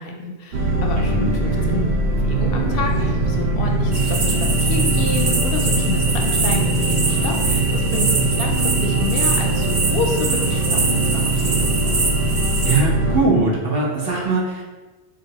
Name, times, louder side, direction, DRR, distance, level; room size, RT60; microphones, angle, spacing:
voice 1, 0.0-11.7, left 4 dB, 65° left, 2 dB, 0.7 m, -29 dB
sound 1, 0.5-13.2, right 2 dB, 80° right, 1.0 m, -21 dB
voice 2, 1.0-1.3 12.6-14.6, right 3 dB, 60° right, -3 dB, 1.1 m, -21 dB
sound 2, 3.9-12.8, right 3 dB, 45° right, 0.5 m, -24 dB
3.7 x 2.5 x 4.5 m, 1.2 s
omnidirectional pair, 1.1 m